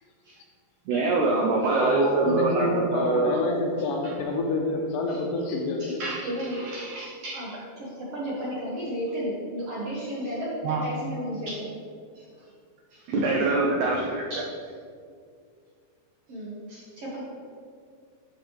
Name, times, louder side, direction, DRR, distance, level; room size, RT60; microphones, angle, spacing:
voice 1, 0.9-3.4 4.0-4.1 6.0-6.3 6.6-7.6 10.6-10.8 11.5-11.6 13.1-14.4 16.7-16.8, right 3 dB, 85° right, -1 dB, 1.7 m, -25 dB
voice 2, 1.8-6.1, left 2 dB, 75° left, 1 dB, 2.2 m, -28 dB
voice 3, 6.0-6.7 7.3-11.7 16.3-16.6 17.0-17.2, equal, 60° right, -6 dB, 1.7 m, -33 dB
12.0 x 5.2 x 3.1 m, 2.2 s
omnidirectional pair, 4.3 m